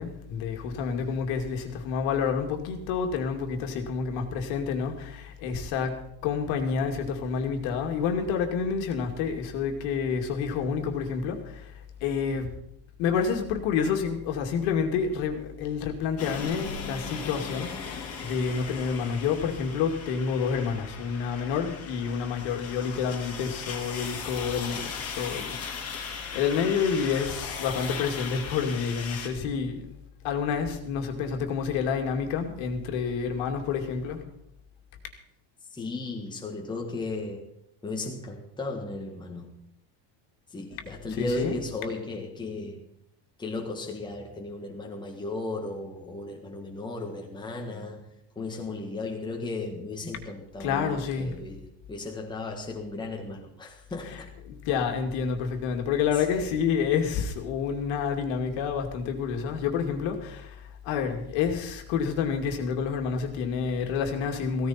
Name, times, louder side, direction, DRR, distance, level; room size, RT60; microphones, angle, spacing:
voice 1, 0.0-11.7 12.0-12.5 13.0-29.9 30.2-34.2 41.1-41.6 50.6-51.4 54.0-54.2 54.5-64.7, left 6 dB, 75° left, 4 dB, 2.5 m, -29 dB
sound 1, 16.2-29.3, left 5 dB, 30° left, 2.3 m, -38 dB
voice 2, 35.7-37.5 37.8-39.6 40.5-42.9 43.4-48.0 48.3-51.6 51.9-54.3 56.3-56.5, left 2 dB, 10° left, 1 dB, 1.6 m, -35 dB
16.0 x 14.5 x 4.4 m, 0.75 s
cardioid pair, 170°, 48 cm